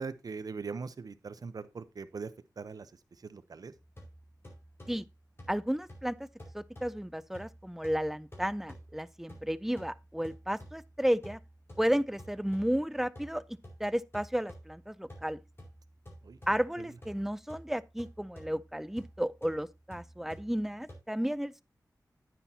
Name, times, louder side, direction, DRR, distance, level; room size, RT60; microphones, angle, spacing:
voice 1, 0.0-2.9 3.2-3.7 16.2-16.4 16.8-16.9, right 5 dB, 65° right, 0.7 m, -41 dB
sound 1, 3.7-21.0, equal, 35° left, 4.8 m, -52 dB
voice 2, 5.5-6.3 6.5-11.4 11.8-13.4 13.8-15.4 16.5-21.6, equal, 5° right, 0.5 m, -33 dB
10.0 x 9.3 x 2.8 m
wide cardioid pair, 90°, 7 cm